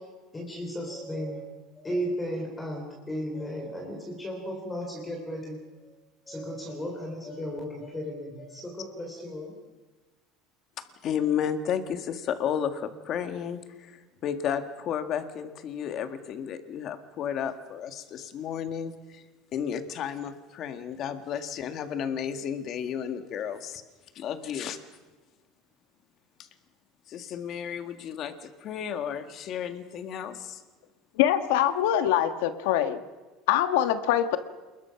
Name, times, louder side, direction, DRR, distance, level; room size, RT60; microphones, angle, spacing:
voice 1, 0.3-1.5 1.8-5.9 6.3-9.6, equal, 10° left, 0 dB, 3.5 m, -35 dB
voice 2, 11.0-19.2 19.5-23.8 24.2-24.8 26.4-26.5 27.1-30.6, left 8 dB, 40° left, 8 dB, 1.8 m, -32 dB
voice 3, 31.2-33.0 33.5-34.4, left 11 dB, 80° left, 10 dB, 1.4 m, -23 dB
28.0 x 21.0 x 5.8 m, 1.2 s
cardioid pair, 160°, 0 cm